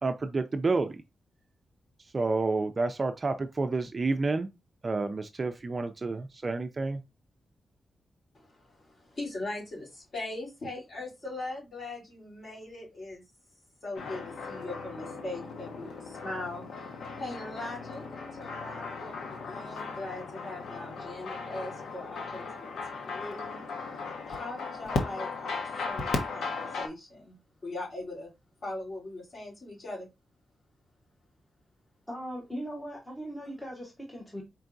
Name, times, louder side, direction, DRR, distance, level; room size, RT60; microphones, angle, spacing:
voice 1, 0.0-1.0 2.1-4.5 4.8-7.0, right 3 dB, 30° right, 0.5 m, -29 dB
voice 2, 8.3-13.2 13.8-16.6 17.2-18.0 18.4-23.6 23.9-27.3 27.6-28.3 28.6-30.1, left 2 dB, 40° left, 3.4 m, -40 dB
sound 1, 13.9-26.9, left 4 dB, 85° left, 1.0 m, -37 dB
voice 3, 32.1-34.4, equal, 10° left, 1.0 m, -39 dB
4.5 x 4.5 x 2.6 m
wide cardioid pair, 160°, 0 cm